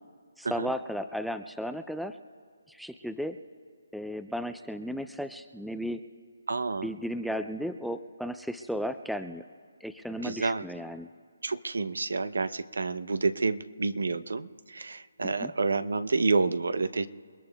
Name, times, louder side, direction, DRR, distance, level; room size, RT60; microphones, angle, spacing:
voice 1, 0.4-2.1 2.7-3.4 3.9-6.0 6.8-9.4 9.8-11.1 15.2-15.5, equal, ahead, 9 dB, 0.4 m, -34 dB
voice 2, 6.5-6.9 10.2-10.6 11.4-17.1, right 3 dB, 80° right, 13 dB, 0.7 m, -29 dB
29.0 x 19.0 x 2.3 m, 2.1 s
hypercardioid pair, 155°, 0 cm